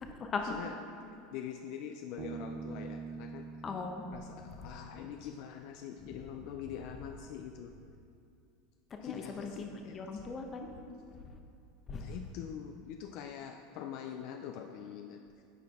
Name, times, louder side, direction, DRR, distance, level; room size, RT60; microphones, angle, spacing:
voice 1, 0.0-0.5 3.6-4.0 6.1-6.2 8.9-10.8 11.1-11.4 11.9-12.2, left 4 dB, 30° left, 3 dB, 0.8 m, -39 dB
voice 2, 1.3-3.5 4.1-7.7 9.0-10.1 12.0-15.2, left 9 dB, 60° left, 4 dB, 0.4 m, -44 dB
Bass guitar, 2.2-5.7, right 5 dB, 45° right, 0.4 m, -45 dB
9.2 x 4.7 x 3.5 m, 2.5 s
supercardioid pair, 115°, 0 cm